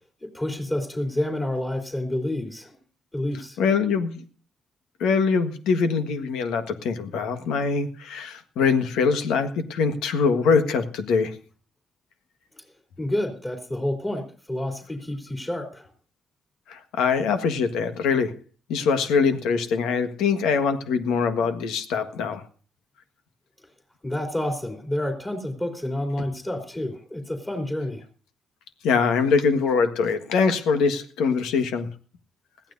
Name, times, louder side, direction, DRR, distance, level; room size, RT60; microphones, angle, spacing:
voice 1, 0.2-2.8 3.1-3.6 12.6-12.7 13.0-15.9 24.0-28.0, left 1 dB, 20° left, 2 dB, 3.6 m, -29 dB
voice 2, 3.6-4.2 5.0-11.4 16.7-18.3 18.7-22.4 28.8-31.9, left 5 dB, 90° left, 8 dB, 1.6 m, -23 dB
21.0 x 15.0 x 2.7 m, 0.39 s
cardioid pair, 90°, 0 cm